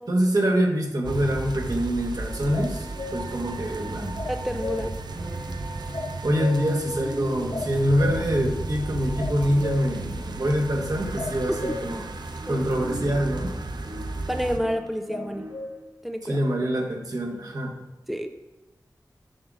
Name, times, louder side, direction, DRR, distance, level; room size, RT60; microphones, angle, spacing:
voice 1, 0.1-2.8 3.1-4.1 6.2-12.0 12.5-13.5 16.2-17.8, equal, 60° right, 0 dB, 1.5 m, -25 dB
sound 1, 1.0-14.6, right 2 dB, 85° right, 0.7 m, -34 dB
sound 2, 2.4-15.9, equal, 30° right, 1.2 m, -43 dB
sound 3, 2.5-3.2 4.2-4.8 5.9-6.7 7.5-8.2 9.2-9.9 11.2-11.8 15.1-15.7, left 4 dB, 80° left, 1.4 m, -34 dB
voice 2, 4.3-4.9 11.5-11.6 12.5-12.6 14.3-15.5 16.0-16.4 18.1-18.3, equal, ahead, 6 dB, 0.5 m, -29 dB
7.1 x 3.8 x 6.2 m, 1.1 s
wide cardioid pair, 55°, 7 cm